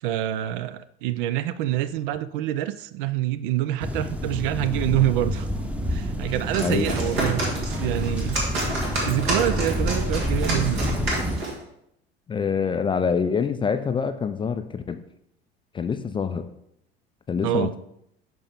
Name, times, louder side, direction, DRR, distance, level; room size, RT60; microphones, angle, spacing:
voice 1, 0.0-5.5 5.9-8.4 9.0-10.9 17.4-17.7, right 13 dB, 55° right, 0.4 m, -26 dB
sound 1, 3.8-11.4, equal, 5° right, 0.8 m, -28 dB
sound 2, 6.3-11.6, right 2 dB, 75° right, 2.0 m, -29 dB
voice 2, 6.6-7.2 12.3-15.0 15.7-16.5 17.3-17.8, left 6 dB, 15° left, 0.4 m, -26 dB
11.0 x 4.5 x 3.5 m
figure-of-eight pair, 65°, 31 cm